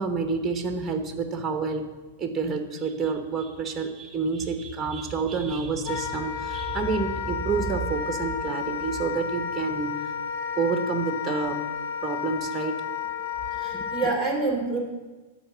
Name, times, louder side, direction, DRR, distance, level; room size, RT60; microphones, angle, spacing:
voice 1, 0.0-1.9 2.2-10.1 10.6-11.6 12.0-12.8 13.7-13.8, right 4 dB, 15° right, 6 dB, 1.0 m, -28 dB
Wind instrument woodwind instrument, 5.8-14.2, left 8 dB, 60° left, 0.7 m, -32 dB
voice 2, 13.5-14.8, right 3 dB, 10° left, -2 dB, 2.7 m, -27 dB
12.0 x 5.0 x 6.8 m, 1.2 s
hypercardioid pair, 135°, 0 cm